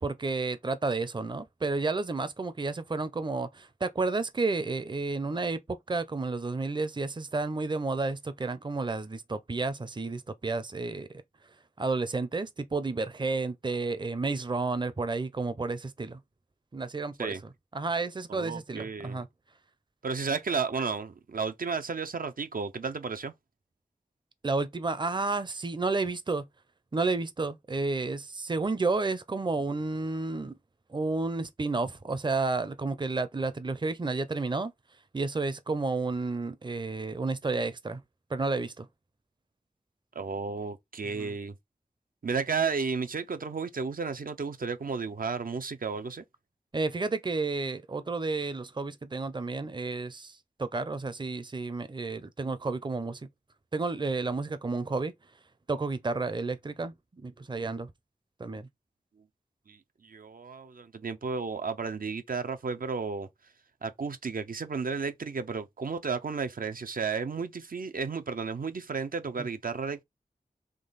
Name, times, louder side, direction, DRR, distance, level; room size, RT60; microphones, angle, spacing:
voice 1, 0.0-11.1 11.8-16.2 16.7-19.3 24.4-26.4 26.9-30.5 30.9-34.7 35.1-38.0 38.3-38.9 41.1-41.3 46.7-53.2 53.7-55.1 55.7-56.9 57.2-57.9 58.4-58.7 69.4-69.5, right 3 dB, 30° right, 0.5 m, -31 dB
voice 2, 18.3-19.2 20.0-23.3 40.2-41.5 42.2-46.2 59.7-63.3 63.8-70.0, right 5 dB, 75° right, 0.6 m, -33 dB
3.7 x 3.1 x 4.0 m
wide cardioid pair, 65°, 15 cm